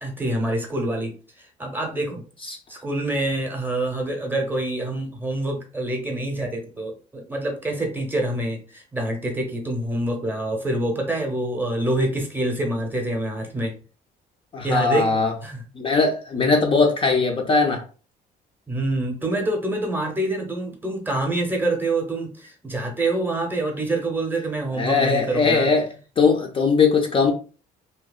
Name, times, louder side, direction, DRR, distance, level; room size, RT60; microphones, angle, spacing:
voice 1, 0.0-2.2 2.7-13.7 14.6-15.1 15.4-15.6 18.7-25.7, right 1 dB, 10° right, 2 dB, 0.7 m, -26 dB
voice 2, 14.5-15.3 15.8-17.8 24.7-25.9 26.2-27.3, left 4 dB, 30° left, 1 dB, 0.4 m, -20 dB
2.8 x 2.0 x 2.3 m, 0.37 s
cardioid pair, 110°, 17 cm